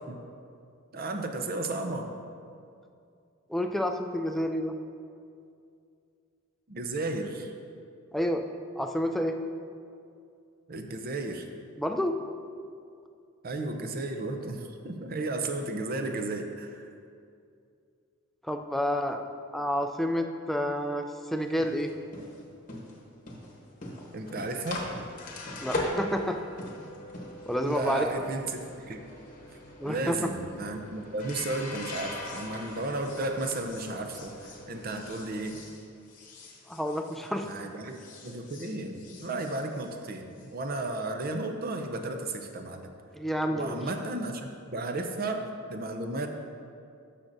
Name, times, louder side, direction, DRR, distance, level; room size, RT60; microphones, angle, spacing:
voice 1, 0.9-2.1 6.7-7.5 10.7-11.5 13.4-16.9 24.1-24.9 27.6-29.0 29.9-35.6 37.4-38.0 38.2-42.9 43.5-46.3, right 2 dB, 45° right, 5 dB, 0.6 m, -34 dB
voice 2, 3.5-4.7 8.1-8.5 8.8-9.4 11.8-12.2 18.5-19.2 19.5-21.9 25.6-26.4 27.5-28.1 29.8-30.2 36.7-37.5 43.1-43.8, equal, ahead, 4 dB, 0.3 m, -29 dB
sound 1, 21.4-37.6 37.9-40.5, left 2 dB, 40° left, 1.0 m, -41 dB
12.5 x 5.8 x 2.6 m, 2.4 s
head